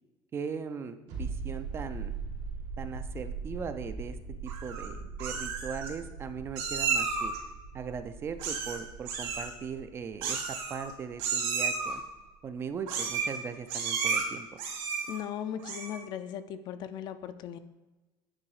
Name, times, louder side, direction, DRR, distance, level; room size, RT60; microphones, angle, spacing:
voice 1, 0.3-2.1 2.8-4.2 4.4-7.3 7.7-12.0 12.4-14.5, right 6 dB, 25° right, 9 dB, 0.4 m, -39 dB
sound 1, 1.1-12.4 12.7-12.8, right 4 dB, 90° right, 2.3 m, -41 dB
Meow, 4.5-4.9 5.2-5.9 6.6-7.4 8.4-8.8 9.0-9.5 10.2-10.9 11.2-11.9 12.9-13.4 13.7-14.2 14.6-15.2 15.6-16.0, right 5 dB, 65° right, 2.0 m, -32 dB
voice 2, 15.1-17.6, left 9 dB, 45° left, 11 dB, 0.4 m, -38 dB
8.7 x 4.0 x 4.8 m, 1.1 s
cardioid pair, 165°, 10 cm